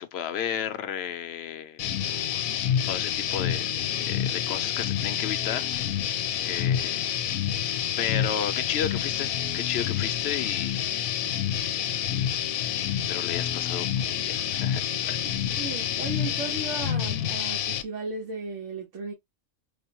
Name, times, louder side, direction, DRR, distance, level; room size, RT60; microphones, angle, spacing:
voice 1, 0.0-1.8 2.1-2.4 2.9-5.9 6.4-7.1 8.0-10.8 11.5-11.9 12.8-14.8 15.1-15.2, left 9 dB, 65° left, 0.7 m, -33 dB
sound 1, 1.8-17.8, left 9 dB, 90° left, 1.0 m, -28 dB
voice 2, 15.6-19.1, right 3 dB, 70° right, 1.4 m, -35 dB
4.8 x 2.1 x 2.9 m
omnidirectional pair, 1.4 m